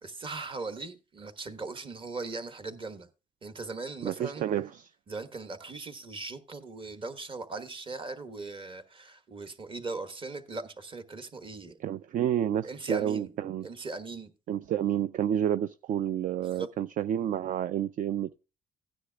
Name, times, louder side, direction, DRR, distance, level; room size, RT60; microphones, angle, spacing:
voice 1, 0.0-3.1 3.4-4.4 5.1-11.8 12.6-13.4 13.6-14.3 16.4-16.7, right 3 dB, 30° right, 1.3 m, -39 dB
voice 2, 4.0-4.9 11.8-13.7 14.5-18.4, right 10 dB, 50° right, 0.4 m, -30 dB
16.0 x 9.9 x 2.3 m
cardioid pair, 110°, 17 cm